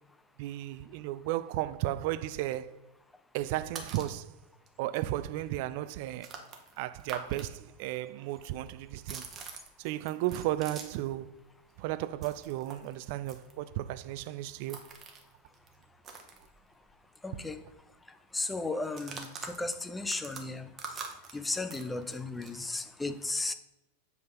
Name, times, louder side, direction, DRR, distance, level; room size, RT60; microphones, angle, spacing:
voice 1, 0.4-2.7 3.3-4.3 4.8-6.3 6.8-9.3 9.8-11.3 11.8-14.8, right 14 dB, 45° right, 0.3 m, -34 dB
sound 1, 3.7-4.2 4.7-4.8 4.9-7.5 7.7-11.1 11.4-17.1 17.3-17.5 17.7-18.1 18.8-22.6, right 5 dB, 25° right, 1.1 m, -46 dB
voice 2, 17.2-17.6 18.3-20.7 21.3-23.5, left 3 dB, 10° left, 0.6 m, -35 dB
7.6 x 3.7 x 5.6 m
figure-of-eight pair, 90°, 0 cm